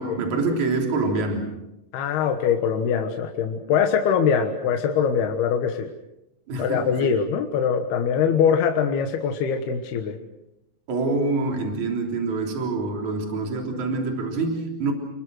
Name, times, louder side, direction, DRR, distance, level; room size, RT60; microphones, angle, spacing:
voice 1, 0.0-1.6 6.5-7.2 10.9-14.9, right 3 dB, 50° right, 2 dB, 4.7 m, -26 dB
voice 2, 1.9-5.9 6.6-10.2, left 7 dB, 90° left, 5 dB, 3.4 m, -23 dB
28.5 x 23.0 x 6.3 m, 0.91 s
omnidirectional pair, 4.4 m